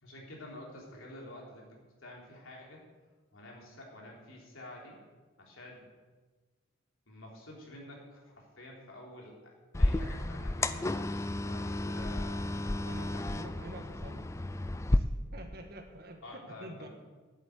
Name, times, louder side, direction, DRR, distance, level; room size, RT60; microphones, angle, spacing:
voice 1, 0.0-1.7 2.0-2.8 3.3-5.0 5.4-5.9 7.1-10.9 11.4-12.5 12.8-13.4 16.2-16.9, left 1 dB, 80° left, -2 dB, 3.7 m, -49 dB
sound 1, 9.7-15.0, left 2 dB, 15° left, 0.3 m, -32 dB
voice 2, 12.9-14.2 14.9-16.9, right 1 dB, 50° right, 5 dB, 1.5 m, -47 dB
10.5 x 8.5 x 8.1 m, 1.3 s
head